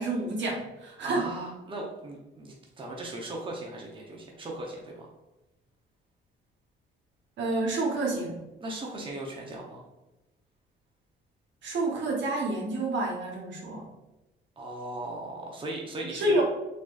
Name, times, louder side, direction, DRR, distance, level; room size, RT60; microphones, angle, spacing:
voice 1, 0.0-1.3 7.4-8.4 11.6-13.8 16.1-16.4, right 2 dB, 65° right, -1 dB, 1.1 m, -29 dB
voice 2, 1.0-5.1 8.6-9.8 14.6-16.4, right 2 dB, 25° right, -2 dB, 0.9 m, -38 dB
4.1 x 3.1 x 2.5 m, 0.99 s
cardioid pair, 90°, 20 cm